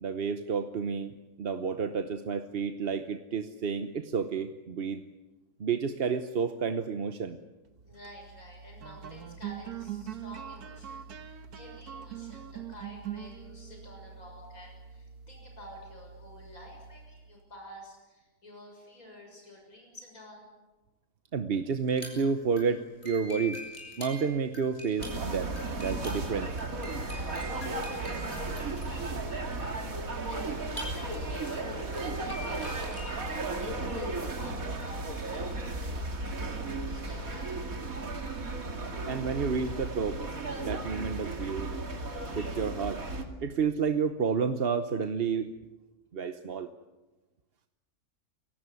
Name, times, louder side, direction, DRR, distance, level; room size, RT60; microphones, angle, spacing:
voice 1, 0.0-5.0 5.6-7.4 21.3-23.6 24.0-25.5 25.8-26.5 39.1-40.2 40.6-41.7 42.3-43.0 43.4-45.5 46.1-46.7, right 5 dB, 45° right, 9 dB, 1.0 m, -30 dB
voice 2, 7.8-20.5 27.0-36.6 36.9-37.8, equal, 65° left, 1 dB, 7.0 m, -50 dB
sound 1, 7.8-17.4, right 8 dB, 85° right, 1.8 m, -43 dB
sound 2, 21.8-33.4, left 1 dB, 30° left, 7.3 m, -45 dB
sound 3, 25.0-43.2, right 2 dB, 65° right, 2.9 m, -35 dB
28.5 x 17.0 x 9.6 m, 1.1 s
omnidirectional pair, 1.6 m